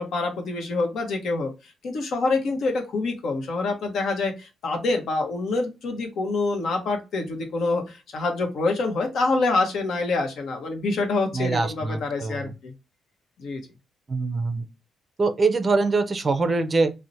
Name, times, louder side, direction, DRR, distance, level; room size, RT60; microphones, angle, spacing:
voice 1, 0.0-1.5 1.8-12.7 13.4-13.6, left 3 dB, 65° left, 0.8 m, -26 dB
voice 2, 11.3-12.5 14.1-14.6 15.2-16.9, right 3 dB, 30° right, 0.4 m, -23 dB
2.9 x 2.1 x 2.5 m
cardioid pair, 90°, 0 cm